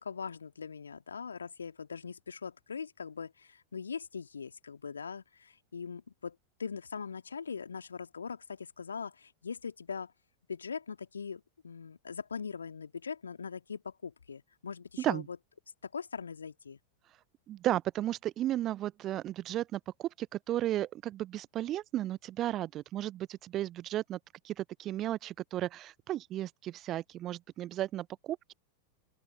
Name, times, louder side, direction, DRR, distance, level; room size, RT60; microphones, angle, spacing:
voice 1, 0.0-10.1 10.5-15.4 15.8-16.8, left 6 dB, 75° left, 2.2 m, -41 dB
voice 2, 17.5-24.2 24.4-28.5, right 13 dB, 30° right, 0.7 m, -34 dB
open air
figure-of-eight pair, 90°, 0 cm